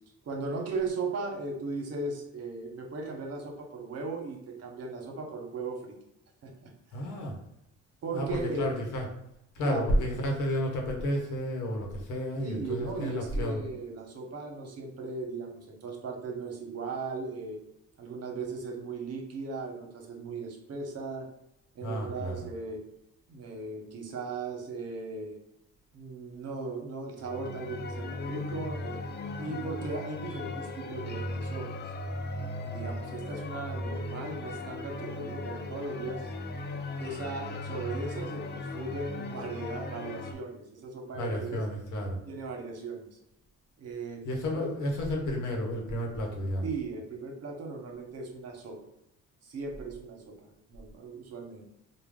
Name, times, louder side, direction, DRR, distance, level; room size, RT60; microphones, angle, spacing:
voice 1, 0.2-5.9 6.4-6.7 7.0-7.1 8.0-8.8 9.6-9.9 12.4-17.6 18.0-21.3 21.7-22.8 23.3-25.4 25.9-29.0 29.4-31.8 32.6-36.3 37.0-41.6 42.2-43.2 43.8-44.2 44.6-44.8 46.6-48.8 49.4-51.6, right 3 dB, 55° right, 2 dB, 0.9 m, -37 dB
voice 2, 6.9-7.4 8.1-9.1 9.5-13.6 21.8-22.4 41.1-42.2 44.2-46.7, equal, 80° left, 0 dB, 1.1 m, -31 dB
sound 1, 27.2-40.3, left 2 dB, 35° left, 0.5 m, -37 dB
3.9 x 2.2 x 3.6 m, 0.81 s
cardioid pair, 90°, 30 cm